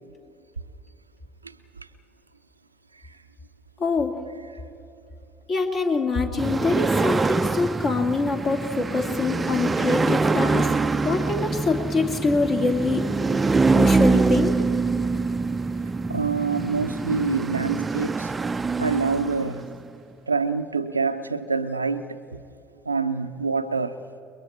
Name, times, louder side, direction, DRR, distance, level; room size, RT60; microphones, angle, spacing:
voice 1, 3.8-4.2 5.5-10.7 11.0-13.1 13.7-14.6, left 3 dB, 40° left, 2 dB, 2.7 m, -24 dB
sound 1, 6.4-19.8, right 4 dB, 20° right, 0.5 m, -24 dB
voice 2, 16.1-18.3 18.8-19.7 20.3-22.4 22.9-24.0, right 4 dB, 90° right, 9 dB, 0.6 m, -26 dB
29.5 x 22.0 x 4.4 m, 2.8 s
figure-of-eight pair, 60°, 0 cm